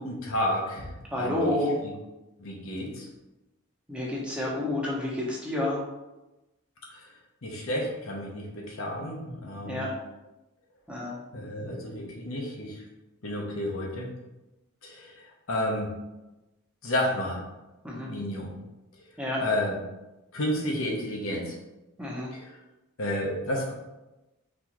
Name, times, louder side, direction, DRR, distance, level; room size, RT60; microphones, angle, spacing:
voice 1, 0.0-1.9 2.4-3.1 6.9-7.1 7.4-9.9 11.3-12.8 13.2-14.1 14.8-15.9 16.8-17.4 18.1-18.5 19.4-19.8 20.3-21.6 22.3-22.5 23.0-23.7, left 1 dB, 70° left, -1 dB, 0.9 m, -31 dB
voice 2, 1.1-1.8 3.9-5.8 9.7-9.9 10.9-11.2 17.8-18.1 19.2-19.4 22.0-22.3, left 1 dB, 5° right, -5 dB, 0.8 m, -29 dB
4.2 x 3.3 x 3.0 m, 1.0 s
head